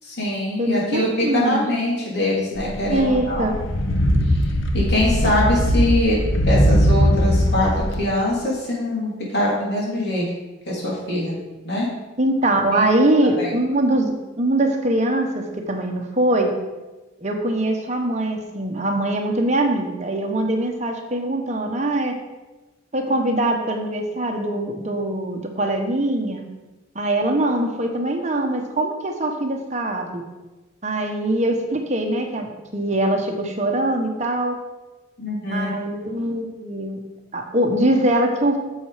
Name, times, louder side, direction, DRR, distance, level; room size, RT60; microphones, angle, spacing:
voice 1, 0.0-3.5 4.3-4.4 4.7-6.2 6.4-10.3 10.6-11.9 12.7-12.8 13.4-13.5 35.2-35.7, left 1 dB, 55° left, -4 dB, 3.3 m, -23 dB
voice 2, 0.6-1.7 2.9-3.5 12.2-16.5 17.2-22.2 22.9-26.4 26.9-30.2 30.8-34.6 35.5-37.0 37.3-38.6, right 1 dB, 35° right, 3 dB, 1.2 m, -22 dB
sound 1, 2.6-7.9, equal, 75° left, 1.1 m, -20 dB
8.8 x 7.4 x 5.1 m, 1.1 s
head